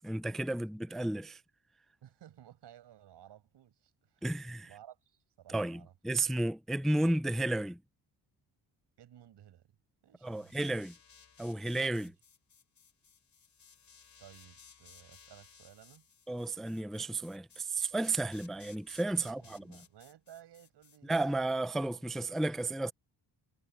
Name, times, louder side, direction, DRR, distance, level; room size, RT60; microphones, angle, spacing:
voice 1, 0.0-1.4 4.2-4.7 5.5-7.8 10.2-10.9 11.4-12.1 16.3-19.8 21.0-22.9, right 2 dB, ahead, 0.4 m, -33 dB
voice 2, 2.0-4.3 4.7-5.9 9.0-9.7 10.0-10.5 11.9-12.1 14.2-16.1 18.9-21.5 21.9-22.9, right 11 dB, 85° right, 6.8 m, -57 dB
sound 1, 10.2-21.3, left 6 dB, 45° left, 3.3 m, -60 dB
wide cardioid pair, 150°, 40 cm